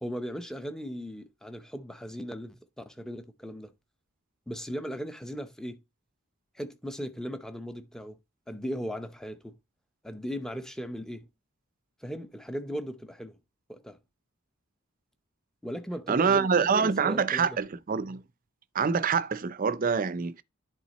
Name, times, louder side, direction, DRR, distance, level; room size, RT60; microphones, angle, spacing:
voice 1, 0.0-3.7 4.5-5.8 6.6-8.2 8.5-9.6 10.0-11.3 12.0-13.4 13.7-14.0 15.6-17.6, equal, 5° left, 0.7 m, -37 dB
voice 2, 16.1-18.2 18.7-20.4, right 6 dB, 40° right, 0.5 m, -25 dB
10.5 x 3.6 x 4.0 m
head